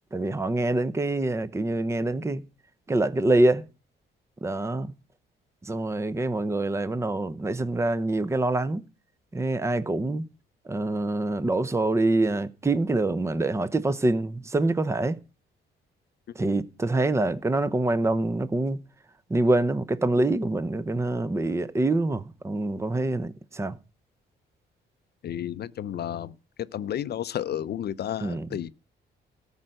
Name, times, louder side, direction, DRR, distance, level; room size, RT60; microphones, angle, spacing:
voice 1, 0.1-2.4 2.9-3.7 4.4-4.9 5.6-8.8 9.3-10.3 10.7-15.2 16.4-18.8 19.3-23.8 28.2-28.5, right 2 dB, 15° right, 0.7 m, -25 dB
voice 2, 25.2-26.3 26.7-28.7, left 10 dB, 55° left, 0.6 m, -32 dB
13.5 x 5.5 x 7.6 m
cardioid pair, 90°, 20 cm